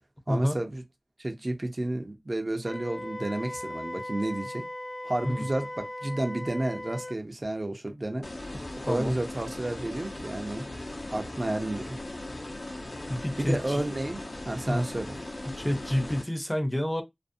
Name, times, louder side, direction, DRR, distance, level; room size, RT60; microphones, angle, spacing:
voice 1, 0.3-0.8 1.2-4.6 5.0-8.3 8.8-10.6 11.1-12.0 13.4-15.2, right 1 dB, 50° right, 0.5 m, -31 dB
Wind instrument woodwind instrument, 2.6-7.2, left 1 dB, 65° left, 1.0 m, -38 dB
sound 1, 8.2-16.2, left 1 dB, 85° left, 0.6 m, -39 dB
voice 2, 8.5-9.2 13.1-13.8 14.7-14.8 15.5-17.0, equal, 15° left, 0.5 m, -29 dB
2.5 x 2.0 x 2.6 m
wide cardioid pair, 50°, 0 cm